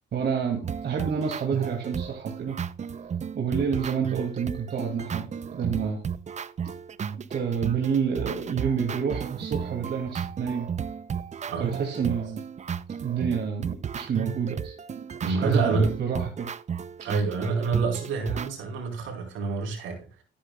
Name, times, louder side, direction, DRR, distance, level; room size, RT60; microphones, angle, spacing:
voice 1, 0.1-2.6 3.3-6.0 7.3-10.7 11.6-12.4 13.0-16.5 17.0-17.1, right 6 dB, 60° right, 2.5 m, -29 dB
sound 1, 0.6-18.5, right 7 dB, 35° right, 0.6 m, -34 dB
voice 2, 15.2-15.9 17.0-20.1, right 4 dB, 80° right, 4.3 m, -27 dB
13.5 x 10.0 x 2.3 m
cardioid pair, 90°, 20 cm